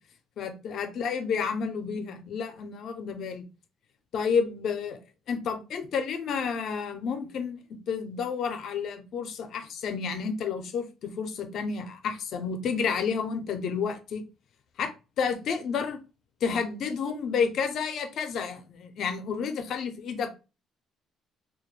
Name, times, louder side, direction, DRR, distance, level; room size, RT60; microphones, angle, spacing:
voice 1, 0.4-3.4 4.1-5.0 5.3-7.6 7.9-14.2 14.8-16.0 16.4-20.4, left 6 dB, 55° left, 0.5 m, -30 dB
2.2 x 2.1 x 3.1 m
cardioid pair, 135°, 0 cm